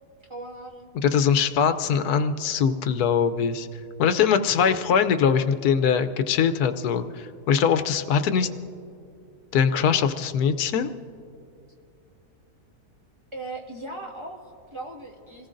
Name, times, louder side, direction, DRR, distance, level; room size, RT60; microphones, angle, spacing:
voice 1, 0.2-0.9 13.3-15.5, right 2 dB, 20° right, -2 dB, 1.8 m, -38 dB
voice 2, 0.9-3.7 4.0-8.5 9.5-10.9, left 7 dB, 85° left, 9 dB, 1.2 m, -22 dB
27.0 x 18.5 x 2.6 m, 2.6 s
omnidirectional pair, 1.6 m